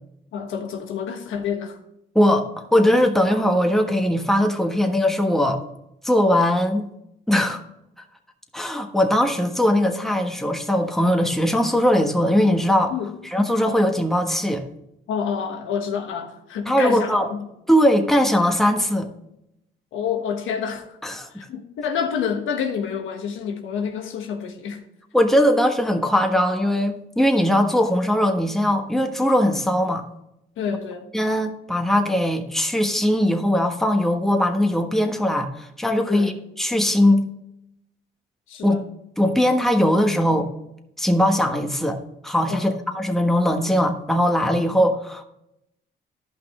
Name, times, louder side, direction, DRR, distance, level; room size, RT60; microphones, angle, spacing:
voice 1, 0.3-1.8 12.9-13.1 15.1-17.5 19.9-20.9 21.3-24.8 30.6-31.1 36.1-36.4 38.5-38.8 42.5-42.8, left 7 dB, 80° left, 1.3 m, -28 dB
voice 2, 2.1-5.6 6.0-6.9 7.3-7.6 8.5-12.9 13.2-14.6 16.7-17.3 17.7-19.1 21.0-21.4 25.1-30.0 31.1-37.3 38.6-38.8 39.2-40.5 41.0-42.0 42.2-45.2, equal, ahead, 1.3 m, -20 dB
13.0 x 5.7 x 3.7 m
cardioid pair, 90°, 20 cm